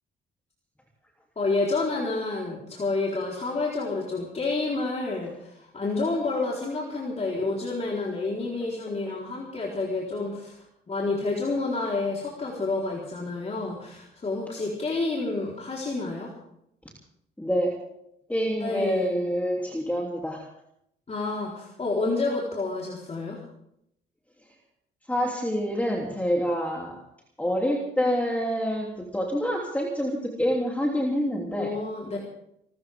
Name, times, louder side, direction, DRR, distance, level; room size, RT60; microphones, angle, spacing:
voice 1, 1.4-16.3 18.6-19.2 21.1-23.4 31.5-32.2, left 3 dB, 35° left, -4 dB, 4.2 m, -29 dB
voice 2, 17.4-17.8 18.3-20.4 25.1-27.0 27.4-31.7, equal, 5° left, -1 dB, 3.2 m, -27 dB
27.0 x 14.0 x 3.7 m, 0.76 s
cardioid pair, 90°, 20 cm